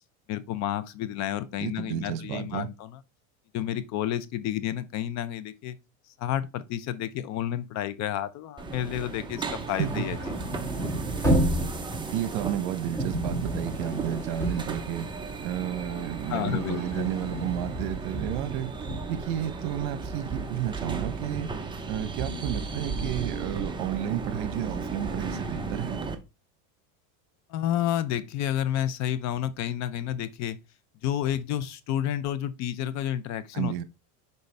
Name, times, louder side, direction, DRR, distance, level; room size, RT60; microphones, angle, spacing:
voice 1, 0.3-3.0 3.5-5.8 6.2-10.4 16.3-17.1 27.5-30.6 31.0-33.7, left 11 dB, 40° left, 0.6 m, -30 dB
voice 2, 1.6-2.7 9.8-10.0 12.1-15.1 15.4-18.7 19.1-21.5 21.9-26.0 33.5-33.8, right 11 dB, 70° right, 1.0 m, -32 dB
sound 1, 8.6-26.2, right 4 dB, 10° right, 0.8 m, -35 dB
sound 2, 9.5-15.5 15.9-19.2, right 1 dB, 5° left, 2.2 m, -31 dB
6.6 x 4.6 x 3.3 m
supercardioid pair, 135°, 44 cm